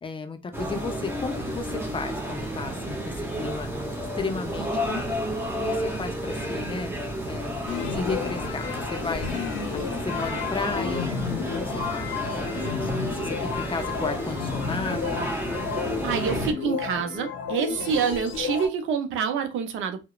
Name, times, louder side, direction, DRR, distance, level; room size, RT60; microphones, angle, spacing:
voice 1, 0.0-3.7 4.2-5.0 5.5-6.9 7.3-9.4 9.7-11.1 11.5-15.3, left 4 dB, 25° left, 0.4 m, -34 dB
sound 1, 0.5-16.5, equal, 10° right, 0.7 m, -31 dB
sound 2, 7.7-18.7, left 6 dB, 75° left, 0.6 m, -32 dB
voice 2, 16.0-20.0, right 6 dB, 80° right, 0.5 m, -27 dB
2.8 x 2.1 x 2.3 m
cardioid pair, 90°, 20 cm